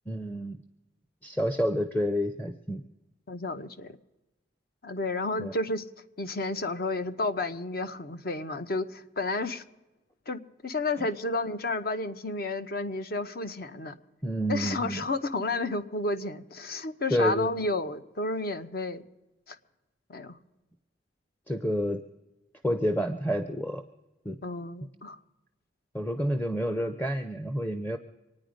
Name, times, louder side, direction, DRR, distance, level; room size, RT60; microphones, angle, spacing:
voice 1, 0.1-0.6 1.2-2.8 5.4-5.5 14.2-15.1 17.1-17.6 21.5-22.0 22.6-23.8 24.2-24.4 25.9-28.0, equal, 10° left, 9 dB, 0.6 m, -29 dB
voice 2, 3.3-4.0 4.8-5.8 6.2-9.6 10.3-14.0 14.5-19.0 19.5-19.6 20.1-20.4 24.4-25.2, left 2 dB, 55° left, 10 dB, 0.8 m, -31 dB
25.0 x 9.6 x 5.1 m, 1.0 s
head